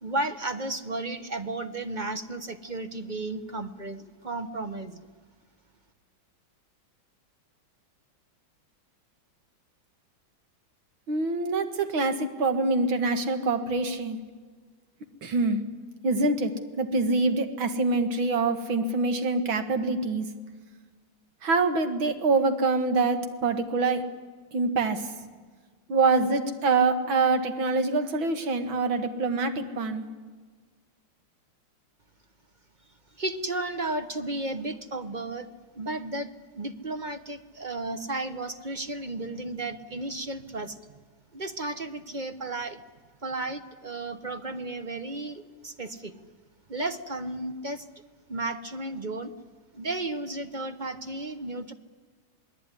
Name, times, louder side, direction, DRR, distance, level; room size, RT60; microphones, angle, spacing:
voice 1, 0.0-5.1 33.1-35.5 35.7-40.8 41.3-42.8 43.2-46.1 46.7-47.9 48.3-49.3 49.7-51.7, right 2 dB, 30° right, 11 dB, 0.9 m, -33 dB
voice 2, 11.1-14.2 15.2-15.6 16.0-20.3 21.4-24.2 24.5-25.1 25.9-30.0, right 3 dB, 75° right, 9 dB, 2.6 m, -25 dB
27.0 x 20.0 x 9.8 m, 1.5 s
omnidirectional pair, 2.2 m